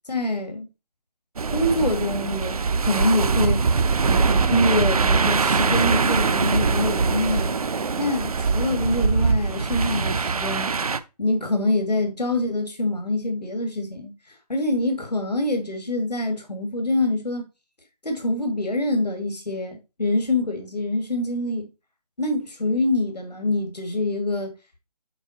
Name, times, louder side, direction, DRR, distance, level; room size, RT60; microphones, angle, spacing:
voice 1, 0.1-0.7 1.5-7.6 8.0-10.7 11.2-14.1 14.5-17.5 18.0-21.7 22.2-24.5, left 2 dB, 85° left, 2.4 m, -25 dB
sound 1, 1.4-11.0, right 4 dB, 65° right, 0.8 m, -22 dB
7.9 x 4.8 x 4.3 m
figure-of-eight pair, 155°, 20 cm